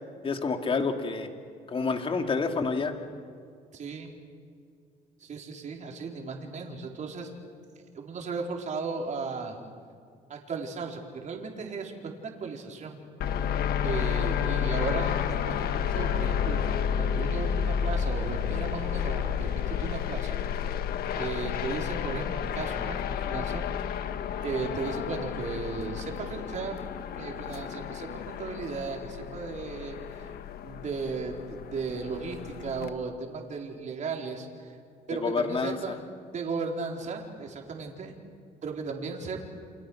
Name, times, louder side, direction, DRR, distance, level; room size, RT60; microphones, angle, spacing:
voice 1, 0.2-1.3 1.7-3.0 35.1-35.9, left 4 dB, 30° left, 5 dB, 2.6 m, -28 dB
voice 2, 3.7-4.1 5.2-7.3 7.9-9.6 10.3-13.0 13.8-16.6 17.0-20.4 21.1-23.7 24.4-26.8 27.2-30.3 30.6-34.8 35.1-36.0 36.3-38.1 38.6-39.5, right 4 dB, 45° right, 1 dB, 4.5 m, -36 dB
sound 1, 13.2-32.9, left 8 dB, 65° left, 1.5 m, -31 dB
29.5 x 28.0 x 6.4 m, 2.3 s
cardioid pair, 110°, 17 cm